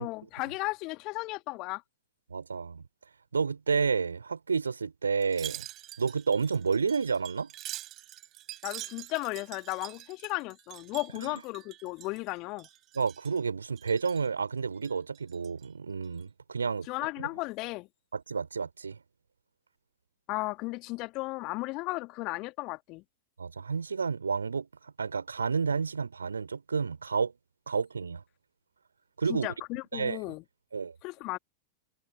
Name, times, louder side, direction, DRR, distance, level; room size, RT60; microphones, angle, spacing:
voice 1, 0.0-1.8 8.6-12.7 16.9-17.9 20.3-23.0 29.3-30.4 31.0-31.4, left 23 dB, 40° left, 2.5 m, -35 dB
voice 2, 2.3-2.8 3.3-5.7 6.0-7.5 11.1-11.4 12.9-16.9 17.2-17.3 18.1-19.0 23.4-27.3 27.7-28.2 29.2-29.5 29.9-30.2 30.7-30.9, right 5 dB, 75° right, 4.2 m, -30 dB
Wind chime, 5.2-12.3 12.6-13.4 13.8-14.3 14.7-15.7 16.0-16.2, right 15 dB, 35° right, 5.6 m, -45 dB
figure-of-eight pair, 90°, 0 cm